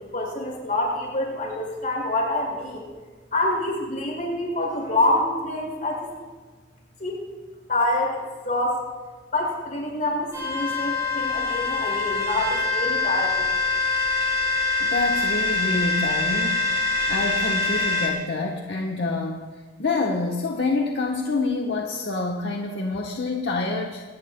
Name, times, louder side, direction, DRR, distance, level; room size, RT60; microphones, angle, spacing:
voice 1, 0.1-2.9 3.3-6.1 7.0-7.2 7.7-8.2 8.4-8.8 9.3-13.5, left 1 dB, 45° left, -2 dB, 5.9 m, -26 dB
sound 1, 10.3-18.1, left 4 dB, 20° right, 5.6 m, -24 dB
voice 2, 14.8-24.0, left 3 dB, 65° left, 0 dB, 1.1 m, -27 dB
24.5 x 18.0 x 2.3 m, 1.4 s
head